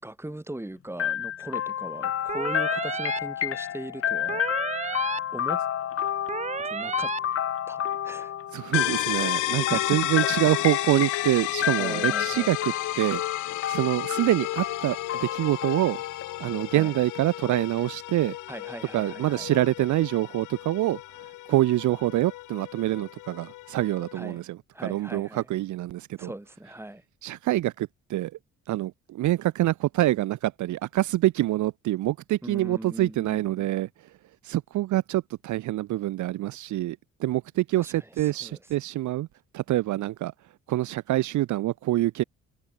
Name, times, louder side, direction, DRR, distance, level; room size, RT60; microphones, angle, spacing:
voice 1, 0.0-4.4 5.3-5.6 6.6-7.1 7.7-8.3 9.7-10.0 11.8-12.5 16.7-16.9 18.5-19.5 24.1-24.4 24.7-25.5 26.2-27.0 32.4-33.7 37.8-38.6, right 1 dB, 10° right, 4.3 m, -39 dB
sound 1, 1.0-16.8, left 10 dB, 50° left, 0.8 m, -30 dB
sound 2, 2.3-3.2 4.3-5.2 6.3-7.2, right 6 dB, 25° right, 0.4 m, -32 dB
voice 2, 8.5-12.6 13.0-13.2 13.5-16.0 16.4-18.4 18.9-21.0 21.5-26.3 27.2-28.3 28.7-33.9 34.4-39.3 39.5-40.3 40.7-42.2, right 15 dB, 75° right, 0.7 m, -26 dB
sound 3, 8.7-24.3, left 18 dB, 90° left, 0.8 m, -33 dB
cardioid pair, 90°, 30 cm